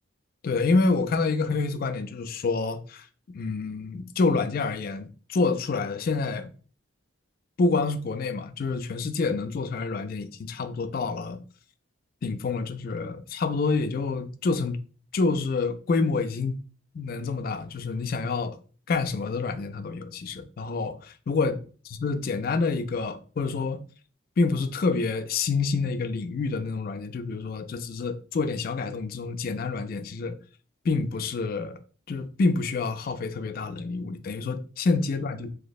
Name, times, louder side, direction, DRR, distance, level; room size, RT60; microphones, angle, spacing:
voice 1, 0.4-6.5 7.6-11.4 12.2-14.8 15.1-16.6 16.9-18.6 18.9-21.6 21.9-23.8 24.4-30.4 30.8-31.8 32.1-35.5, left 4 dB, 45° left, 0.3 m, -27 dB
2.7 x 2.0 x 4.0 m
head